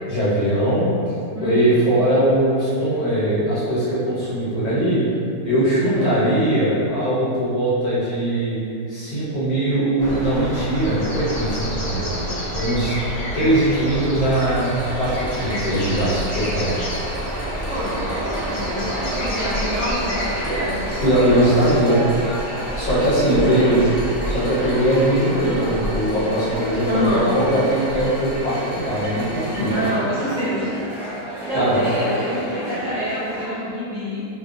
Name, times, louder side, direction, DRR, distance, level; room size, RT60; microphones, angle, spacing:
voice 1, 0.1-0.9 1.4-5.0 5.4-8.6 8.9-12.1 12.5-12.9 13.3-14.7 14.9-16.7 21.0-21.9 22.7-23.8 24.2-29.8 31.5-31.8, right 1 dB, 65° left, -10 dB, 1.2 m, -20 dB
voice 2, 1.3-1.8 5.8-6.1 17.7-22.1 23.3-23.9 26.8-27.3 29.7-30.7 31.5-34.2, equal, 55° right, -12 dB, 1.1 m, -27 dB
sound 1, 10.0-21.7, equal, 80° left, 0.5 m, -29 dB
sound 2, 14.2-29.9, equal, 45° left, 0.8 m, -33 dB
sound 3, 17.0-33.4, right 1 dB, 15° right, 0.4 m, -33 dB
2.9 x 2.1 x 2.4 m, 2.6 s
omnidirectional pair, 1.9 m